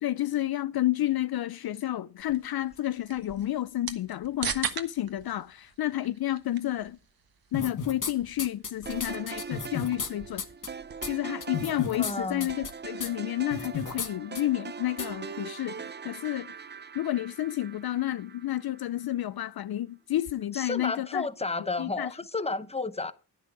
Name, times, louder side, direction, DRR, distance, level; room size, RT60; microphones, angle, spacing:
voice 1, 0.0-7.0 7.5-10.4 11.1-16.5 16.9-21.3 21.8-22.1, left 14 dB, 65° left, 0.5 m, -30 dB
sound 1, 2.2-12.9, right 7 dB, 60° right, 1.4 m, -42 dB
sound 2, 7.5-8.1 8.4-10.1 10.4-10.7 11.0-11.1 11.4-12.1 12.4-12.7 13.0-13.1 13.5-14.1 14.4-14.5 15.0-15.1, left 5 dB, 50° left, 1.6 m, -33 dB
sound 3, 8.9-19.1, right 5 dB, 25° right, 0.6 m, -42 dB
voice 2, 12.0-12.5 20.5-23.1, left 3 dB, 15° left, 0.9 m, -32 dB
10.5 x 10.5 x 4.8 m
cardioid pair, 60°, 40 cm